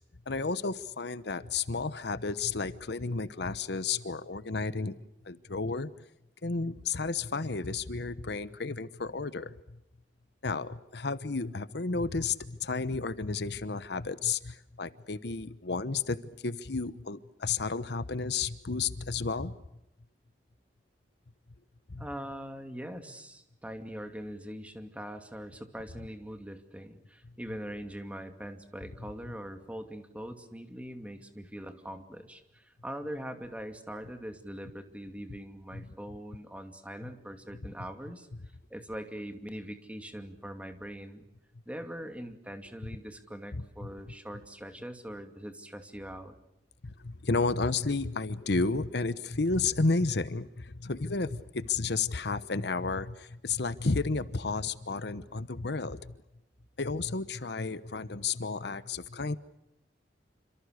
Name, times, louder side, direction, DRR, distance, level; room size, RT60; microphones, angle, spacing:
voice 1, 0.3-5.0 5.3-5.9 6.4-9.5 10.4-16.2 16.4-19.6 21.9-22.1 35.7-35.9 37.0-37.1 43.5-43.9 46.8-56.1 56.8-59.3, left 4 dB, 65° left, 15 dB, 1.0 m, -32 dB
voice 2, 22.0-38.3 38.7-41.3 41.7-46.4, equal, 10° right, 7 dB, 2.5 m, -42 dB
28.0 x 26.5 x 6.6 m, 0.84 s
head